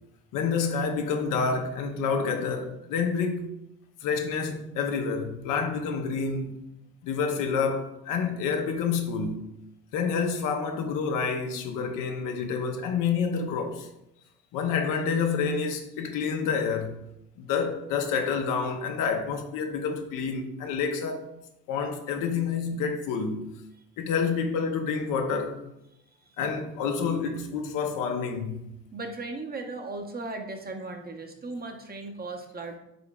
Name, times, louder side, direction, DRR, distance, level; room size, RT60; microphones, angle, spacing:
voice 1, 0.3-3.4 4.0-6.6 7.0-9.4 9.9-13.9 14.5-17.0 17.4-21.3 21.7-23.5 24.0-25.6 26.4-28.6, left 5 dB, 65° left, 0.7 m, -28 dB
voice 2, 26.1-26.4 28.9-32.8, right 3 dB, 25° right, 0.8 m, -37 dB
5.2 x 3.7 x 2.3 m
hypercardioid pair, 50°, 34 cm